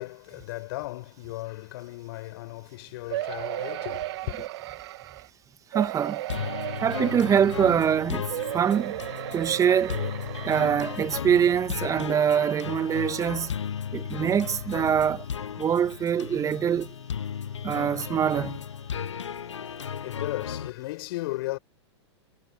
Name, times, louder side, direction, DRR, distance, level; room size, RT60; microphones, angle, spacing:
voice 1, 0.0-4.5 19.1-21.6, left 19 dB, 55° left, 6.3 m, -36 dB
sound 1, 3.1-5.3 5.7-7.9 8.3-11.1 11.7-11.8 12.1-12.2, right 16 dB, 60° right, 2.3 m, -35 dB
voice 2, 5.7-6.2 6.8-9.0 9.3-10.0 10.5-13.5 13.9-15.3 15.6-16.9 17.6-18.6, right 8 dB, 20° right, 1.8 m, -24 dB
sound 2, 6.3-20.7, left 8 dB, 80° left, 0.8 m, -35 dB
hypercardioid pair, 105°, 15 cm